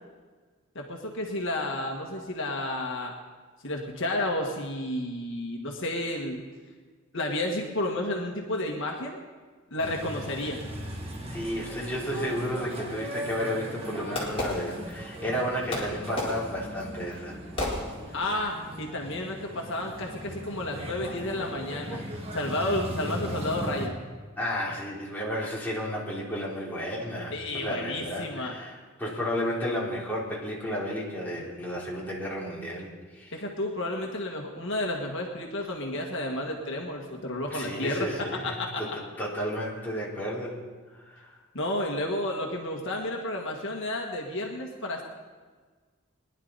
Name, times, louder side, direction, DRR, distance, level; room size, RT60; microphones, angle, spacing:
voice 1, 0.7-3.1 3.6-6.4 7.1-9.2 9.7-10.6 18.1-22.0 22.3-24.0 27.3-28.6 33.3-38.8 41.5-45.0, left 1 dB, 65° left, 1 dB, 1.7 m, -31 dB
sound 1, 9.8-23.9, equal, 30° right, 1.8 m, -38 dB
voice 2, 11.3-17.4 24.4-33.3 37.5-40.6 41.1-41.3, equal, 10° left, -6 dB, 3.3 m, -32 dB
Fireworks, 13.0-15.3 15.7-18.4, left 1 dB, 25° left, 3.9 m, -34 dB
21.5 x 11.0 x 4.1 m, 1.4 s
head